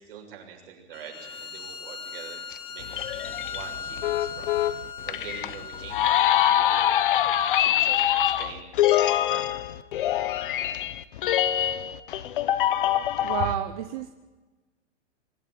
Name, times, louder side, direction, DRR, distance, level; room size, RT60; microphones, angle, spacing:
voice 1, 0.0-2.4 2.7-7.0 7.6-9.7, right 7 dB, 50° right, 2 dB, 6.8 m, -45 dB
Bowed string instrument, 0.9-6.3, left 5 dB, 15° left, 1.1 m, -39 dB
sound 1, 2.5-13.5, left 12 dB, 45° left, 1.1 m, -24 dB
voice 2, 13.2-14.1, right 11 dB, 30° right, 8 dB, 0.9 m, -30 dB
24.5 x 13.0 x 9.5 m, 1.2 s
supercardioid pair, 175°, 36 cm